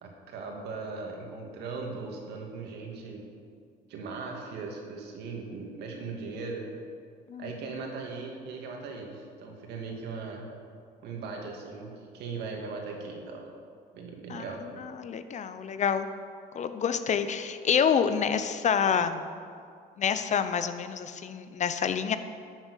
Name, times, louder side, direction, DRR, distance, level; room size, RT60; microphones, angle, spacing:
voice 1, 0.0-3.2 3.9-6.6 7.4-10.5 11.0-13.5 13.9-14.6, right 4 dB, 80° right, 1 dB, 2.5 m, -39 dB
voice 2, 15.0-16.1 16.5-19.2 20.0-22.2, left 7 dB, 45° left, 10 dB, 0.8 m, -27 dB
11.5 x 7.4 x 8.2 m, 2.2 s
cardioid pair, 110°, 17 cm